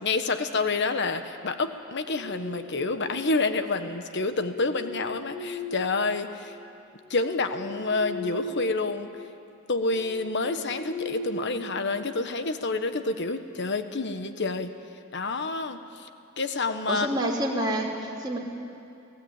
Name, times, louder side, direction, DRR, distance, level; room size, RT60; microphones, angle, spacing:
voice 1, 0.0-6.6 7.1-9.1 9.7-14.7 15.1-16.1 16.4-17.1, left 3 dB, 55° left, 9 dB, 1.3 m, -28 dB
sound 1, 1.8-3.3 4.3-6.5 6.9-8.8 9.1-9.3 9.8-12.2, left 2 dB, 25° left, 5.1 m, -38 dB
voice 2, 16.9-18.4, right 1 dB, 20° right, -3 dB, 3.3 m, -28 dB
30.0 x 16.5 x 8.9 m, 2.6 s
head